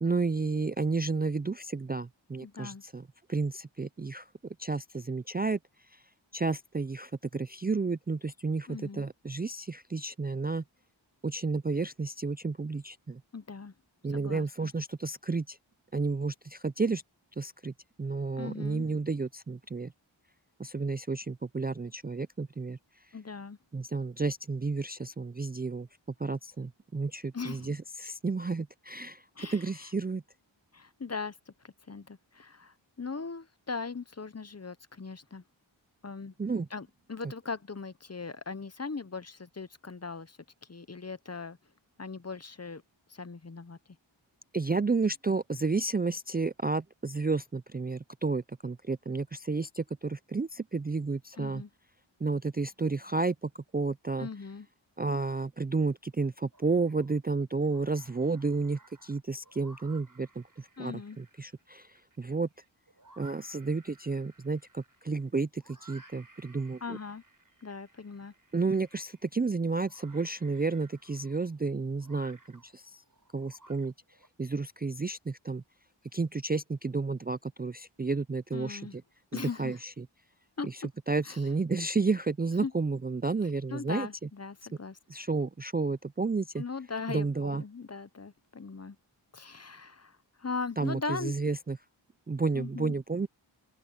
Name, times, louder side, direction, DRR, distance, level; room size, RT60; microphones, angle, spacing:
voice 1, 0.0-3.0 3.3-4.3 4.6-5.6 6.3-10.6 11.2-13.2 14.0-15.6 15.9-17.0 17.4-17.7 18.0-19.9 20.6-22.8 23.7-25.9 26.2-30.2 36.4-36.7 44.5-51.6 52.2-54.3 55.0-61.9 62.2-62.5 63.2-67.0 68.5-73.0 73.3-73.9 74.4-75.6 76.1-78.8 79.3-80.1 80.6-80.7 81.1-84.1 85.1-86.6 87.1-87.6 90.8-91.8 92.3-93.3, right 3 dB, 20° right, 0.4 m, -31 dB
voice 2, 2.4-2.8 8.7-9.1 13.3-13.7 14.0-14.7 18.4-18.9 23.1-23.6 27.3-27.7 29.4-29.6 30.7-35.4 36.0-36.3 36.7-40.4 40.7-41.6 42.0-42.8 43.1-43.8 51.4-51.7 54.2-54.7 60.8-61.2 66.8-67.2 67.6-68.3 78.5-79.0 79.3-79.8 80.6-80.9 81.2-81.4 82.6-82.7 83.7-85.0 86.6-89.0 89.3-91.3 92.5-93.0, left 4 dB, 35° left, 0.8 m, -39 dB
sound 1, 56.5-57.2 57.6-74.3, right 2 dB, 45° right, 6.3 m, -59 dB
open air
cardioid pair, 40°, 47 cm